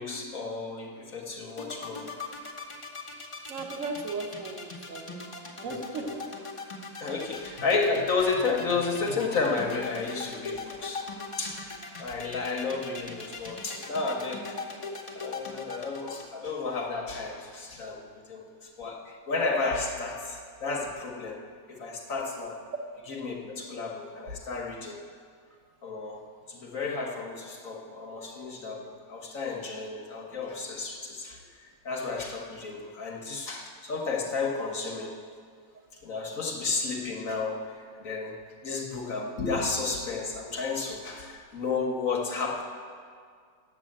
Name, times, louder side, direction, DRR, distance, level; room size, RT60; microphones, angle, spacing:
voice 1, 0.0-2.1 7.0-11.1 11.4-14.6 15.1-21.4 21.7-22.6 23.1-25.0 25.8-31.4 31.8-35.1 36.0-38.4 38.6-42.6, left 4 dB, 55° left, 1 dB, 1.1 m, -32 dB
sound 1, 1.5-16.3, left 4 dB, 25° left, 0.7 m, -40 dB
voice 2, 3.5-5.2 5.6-6.2, right 3 dB, 50° right, 3 dB, 1.2 m, -36 dB
9.0 x 7.5 x 7.6 m, 2.1 s
omnidirectional pair, 2.0 m